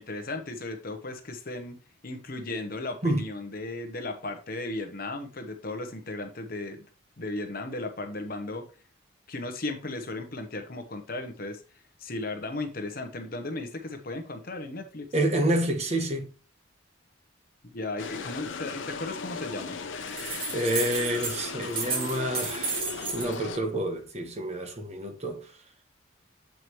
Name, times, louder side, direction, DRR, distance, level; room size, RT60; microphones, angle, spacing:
voice 1, 0.0-1.8 2.0-6.8 7.2-8.6 9.3-11.6 12.0-15.1 17.6-19.8, left 2 dB, 50° left, 1.0 m, -35 dB
voice 2, 15.1-16.3 20.1-25.4, right 1 dB, 35° right, 1.1 m, -29 dB
sound 1, 18.0-23.6, left 4 dB, 80° left, 0.8 m, -37 dB
sound 2, 20.0-21.4 21.6-23.3, right 4 dB, 50° right, 2.6 m, -32 dB
7.7 x 4.9 x 3.0 m
head